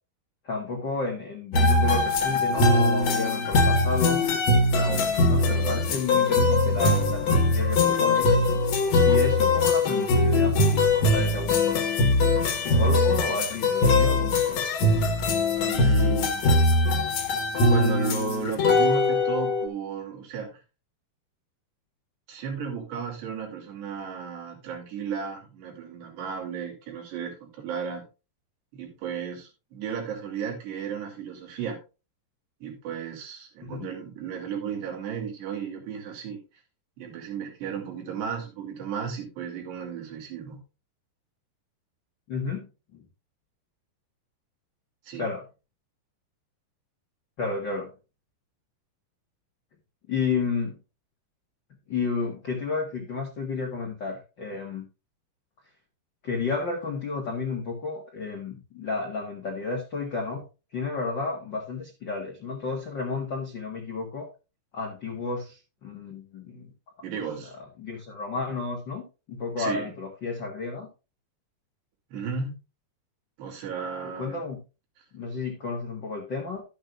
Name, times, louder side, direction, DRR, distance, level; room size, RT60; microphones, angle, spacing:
voice 1, 0.4-4.2 4.8-8.3 9.0-10.8 11.1-11.7 12.5-14.6 33.6-33.9 42.3-42.7 42.9-43.0 45.2-45.4 47.4-47.9 50.1-50.8 51.9-54.9 56.2-60.4 60.7-64.3 64.7-66.7 67.8-70.9 74.2-74.6 75.1-76.6, left 4 dB, 80° left, 1 dB, 1.0 m, -32 dB
sound 1, 1.5-19.7, left 2 dB, 60° left, 2.1 m, -22 dB
voice 2, 4.7-5.8 15.6-16.5 17.6-20.6 22.3-28.0 28.7-31.8 32.6-36.4 37.0-40.6 45.0-45.2 67.0-67.5 69.6-69.9 72.1-72.6 73.4-74.4, right 7 dB, 80° right, 2 dB, 4.8 m, -34 dB
12.5 x 8.7 x 2.4 m, 0.30 s
omnidirectional pair, 4.8 m